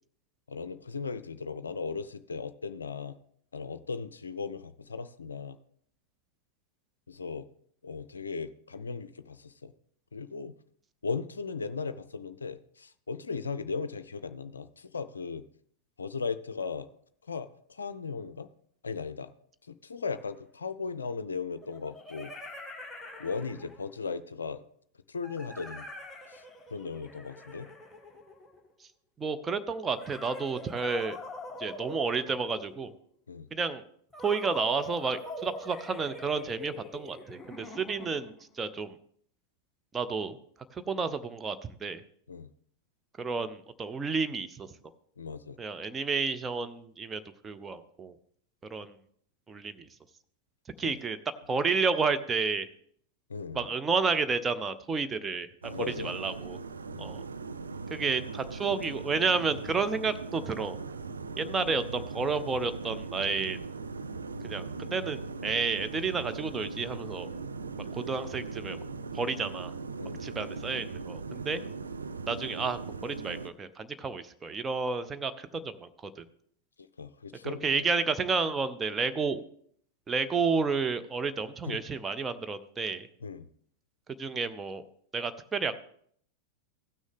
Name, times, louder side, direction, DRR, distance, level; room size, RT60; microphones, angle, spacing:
voice 1, 0.5-3.2 3.5-5.6 7.1-7.5 7.8-9.7 10.1-10.5 11.0-15.4 16.0-16.9 17.3-18.5 18.8-19.3 19.7-22.3 23.2-24.6 25.1-25.8 26.3-26.4 26.7-27.7 33.3-33.5 42.3-42.5 45.2-45.6 50.8-51.0 53.3-53.7 55.7-56.1 56.9-57.1 70.0-70.2 77.0-77.8 81.6-81.8 83.2-83.5, left 5 dB, 70° left, 12 dB, 0.4 m, -37 dB
sound 1, 20.1-20.2 21.6-24.0 25.2-28.7 29.9-33.0 34.1-38.4, left 1 dB, 5° left, 1.5 m, -44 dB
voice 2, 29.2-31.2 31.6-32.9 33.5-33.8 34.2-39.0 39.9-40.4 40.7-42.0 43.2-44.7 45.6-48.2 48.7-48.9 49.5-49.9 50.8-51.2 51.5-52.7 53.5-55.5 55.9-56.6 57.0-57.2 57.9-60.8 61.4-63.6 64.4-64.6 64.9-67.3 67.9-68.8 69.1-69.7 70.2-71.6 72.3-76.2 77.4-79.4 80.1-83.1 84.2-84.8 85.1-85.8, right 4 dB, 15° right, 10 dB, 0.7 m, -31 dB
sound 2, 55.6-73.5, right 4 dB, 75° right, 0.5 m, -39 dB
16.0 x 6.2 x 3.6 m, 0.64 s
figure-of-eight pair, 90°, 0 cm